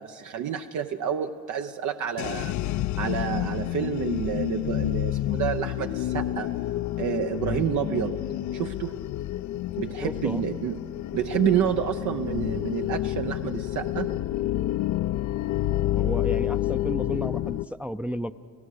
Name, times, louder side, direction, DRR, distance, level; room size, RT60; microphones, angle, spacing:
voice 1, 0.0-2.6 3.0-6.5 7.0-8.2 8.5-8.9 9.8-10.8 11.1-14.1, right 9 dB, 75° right, 6 dB, 0.7 m, -29 dB
sound 1, 2.2-17.7, left 14 dB, 75° left, 0.5 m, -29 dB
voice 2, 10.0-10.4 15.9-18.3, equal, 5° right, 9 dB, 0.4 m, -33 dB
29.5 x 16.0 x 6.5 m, 2.3 s
cardioid pair, 90°, 30 cm